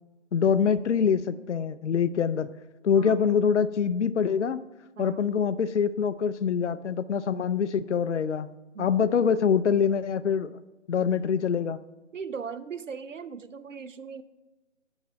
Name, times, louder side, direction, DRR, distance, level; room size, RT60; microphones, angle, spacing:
voice 1, 0.3-2.5 2.8-4.6 5.0-10.5 10.9-11.8, left 7 dB, 70° left, 14 dB, 0.5 m, -25 dB
voice 2, 3.0-3.5 5.0-5.4 8.7-9.1 12.1-14.2, right 5 dB, 80° right, 14 dB, 0.7 m, -39 dB
9.7 x 5.4 x 5.0 m, 1.2 s
figure-of-eight pair, 165°, 37 cm